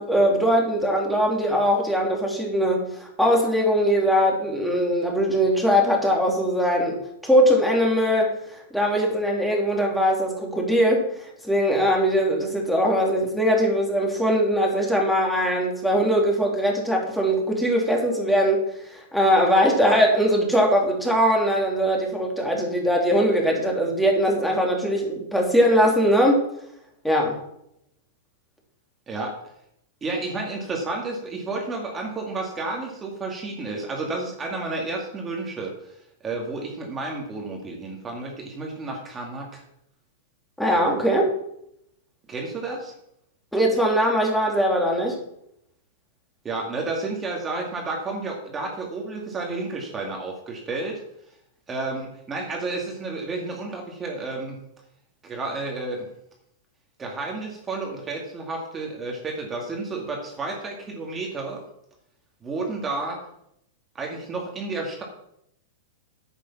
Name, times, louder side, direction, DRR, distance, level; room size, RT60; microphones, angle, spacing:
voice 1, 0.0-11.1 11.4-26.4 27.0-27.4 40.6-41.3 43.5-45.2, equal, ahead, -1 dB, 3.0 m, -21 dB
voice 2, 30.0-35.9 36.2-39.6 42.3-42.9 46.4-51.0 51.7-54.6 55.2-56.1 57.0-61.6 62.4-63.2 63.9-65.0, right 3 dB, 15° right, 0 dB, 2.2 m, -31 dB
10.5 x 8.2 x 5.9 m, 0.75 s
hypercardioid pair, 140°, 0 cm